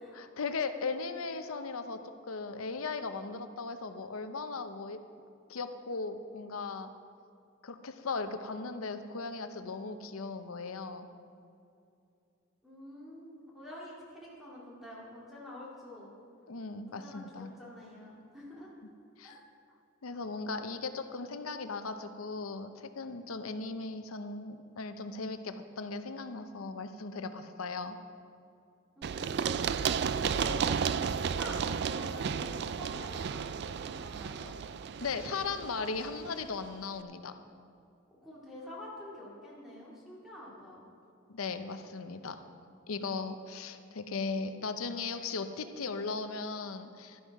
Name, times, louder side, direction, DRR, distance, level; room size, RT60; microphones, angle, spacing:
voice 1, 0.1-5.0 5.5-6.9 7.6-11.1 16.5-17.5 19.2-19.3 20.0-28.0 35.0-37.3 41.3-42.4 42.9-47.2, left 4 dB, 90° left, 9 dB, 0.8 m, -37 dB
voice 2, 12.6-16.1 16.9-18.7 19.2-19.4 29.0-34.5 38.2-40.8, left 1 dB, ahead, -7 dB, 2.3 m, -47 dB
Run, 29.0-36.7, right 6 dB, 50° right, 0.3 m, -33 dB
11.5 x 11.0 x 4.8 m, 2.5 s
head